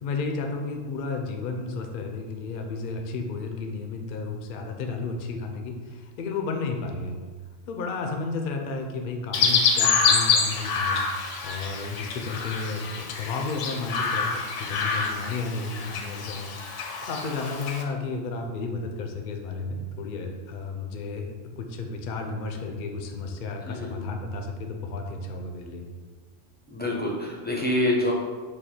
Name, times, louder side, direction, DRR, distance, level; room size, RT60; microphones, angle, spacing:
voice 1, 0.0-7.2 7.7-11.1 11.4-16.6 17.1-25.8, left 3 dB, 60° left, 4 dB, 0.6 m, -32 dB
Chirp tweet, 9.3-17.8, left 5 dB, 75° left, 0.9 m, -26 dB
voice 2, 23.7-24.0 26.7-28.1, left 1 dB, 15° left, -4 dB, 0.4 m, -26 dB
4.9 x 2.4 x 4.2 m, 1.5 s
omnidirectional pair, 1.3 m